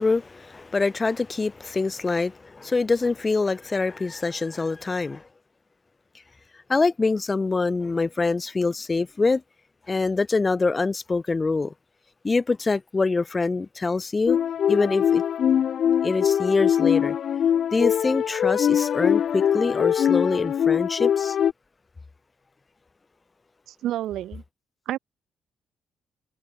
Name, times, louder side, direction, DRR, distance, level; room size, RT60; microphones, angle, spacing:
voice 1, 0.0-5.2 6.7-9.4 9.9-11.7 12.2-14.4 14.7-15.2 16.0-17.2 17.7-21.4, left 3 dB, 25° left, 0.8 m, -25 dB
sound 1, 14.3-21.5, left 9 dB, 60° left, 0.7 m, -22 dB
voice 2, 23.7-24.4 24.9-25.0, right 13 dB, 80° right, 2.4 m, -29 dB
cardioid pair, 90°, 0 cm